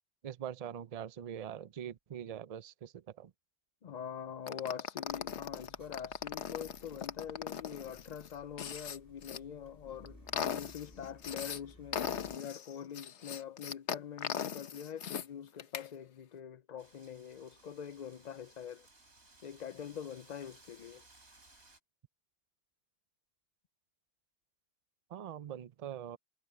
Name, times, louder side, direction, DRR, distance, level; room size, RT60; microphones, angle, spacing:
voice 1, 0.2-3.3 25.1-26.2, right 9 dB, 45° right, 0.5 m, -43 dB
voice 2, 3.8-18.9 19.4-21.0, left 8 dB, 55° left, 0.5 m, -44 dB
sound 1, 4.5-9.4 9.9-11.6 11.9-15.3 15.6-15.9, left 8 dB, 70° left, 1.2 m, -39 dB
Car, 5.1-12.4, left 1 dB, 15° left, 3.7 m, -59 dB
Wind, 16.8-21.8, right 2 dB, 65° right, 4.2 m, -61 dB
omnidirectional pair, 1.2 m